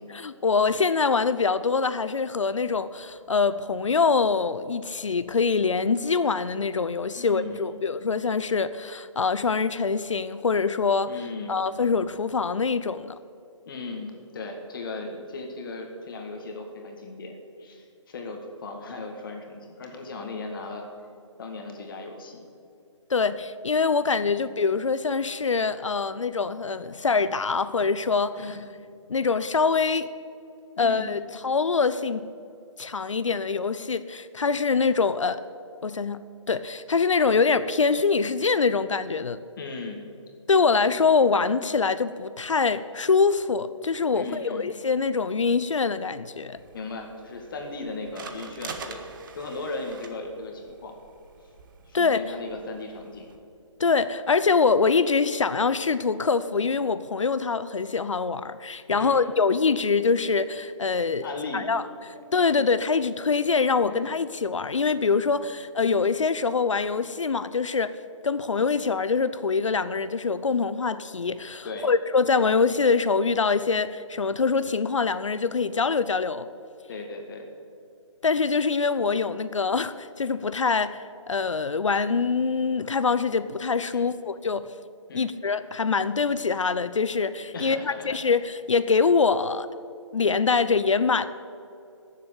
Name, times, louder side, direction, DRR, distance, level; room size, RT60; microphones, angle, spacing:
voice 1, 0.1-11.1 11.5-13.1 23.1-28.6 29.1-30.1 30.8-32.2 32.8-35.4 35.8-36.2 36.5-39.4 40.5-46.6 51.9-52.2 53.8-61.3 61.5-61.8 62.3-68.0 68.2-76.5 78.2-84.7 85.1-89.7 90.1-91.3, left 5 dB, 75° left, 13 dB, 0.7 m, -24 dB
voice 2, 7.1-7.8 11.1-11.6 13.7-20.9 21.4-22.5 28.4-28.6 30.8-31.2 39.6-40.0 44.1-44.7 46.7-49.0 49.4-50.9 51.8-53.3 58.9-59.3 61.2-61.8 63.8-64.1 71.6-71.9 76.9-77.5 83.9-84.1 85.1-85.3 87.5-88.2, left 3 dB, 45° left, 3 dB, 2.0 m, -37 dB
sound 1, 46.6-53.4, right 5 dB, 40° right, 1.5 m, -45 dB
14.5 x 7.6 x 9.6 m, 2.6 s
figure-of-eight pair, 145°, 16 cm